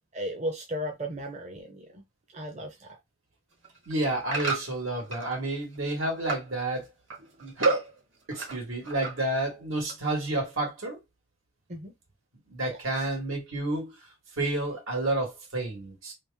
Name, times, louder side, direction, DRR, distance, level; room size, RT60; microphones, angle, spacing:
voice 1, 0.1-2.0 2.3-3.0 11.7-11.9 12.7-13.0, equal, 35° right, 0.6 m, -36 dB
sound 1, 3.5-5.4 5.7-6.5 6.8-8.6 8.8-9.4 9.9-10.0, right 4 dB, 60° right, 1.6 m, -35 dB
voice 2, 3.9-6.9 7.4-7.9 8.3-11.0 12.5-14.0 14.4-16.1, right 2 dB, 85° right, 1.6 m, -30 dB
3.1 x 2.4 x 3.5 m
head